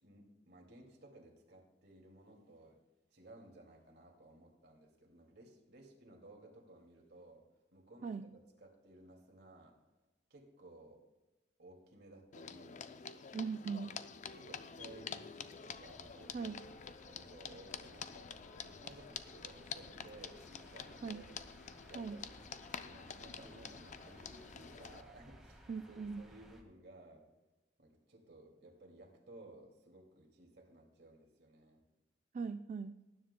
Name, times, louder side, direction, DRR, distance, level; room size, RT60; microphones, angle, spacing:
voice 1, 0.0-2.8 3.1-7.4 7.7-9.8 10.3-11.0 11.6-13.0 14.3-16.7 17.0-21.4 21.9-22.3 22.7-27.3 27.8-31.8, right 2 dB, 65° right, 1 dB, 2.3 m, -58 dB
sound 1, 12.3-25.0, left 6 dB, 45° left, 0.5 m, -48 dB
voice 2, 13.3-13.9 16.3-16.6 21.0-21.3 21.9-22.2 25.7-26.2 32.3-33.0, right 5 dB, 45° right, 8 dB, 0.3 m, -40 dB
sound 2, 15.7-26.6, equal, ahead, 1.7 m, -60 dB
19.0 x 10.0 x 2.2 m, 1.1 s
head